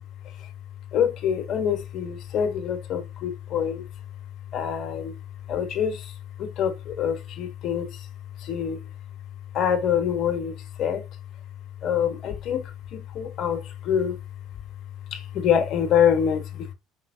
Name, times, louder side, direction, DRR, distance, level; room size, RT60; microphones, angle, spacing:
voice 1, 0.9-3.9 4.5-5.2 5.5-8.1 8.4-8.9 9.5-11.1 11.8-14.2 15.1-16.7, left 8 dB, 55° left, 0.9 m, -26 dB
4.3 x 3.7 x 2.5 m
hypercardioid pair, 75°, 0 cm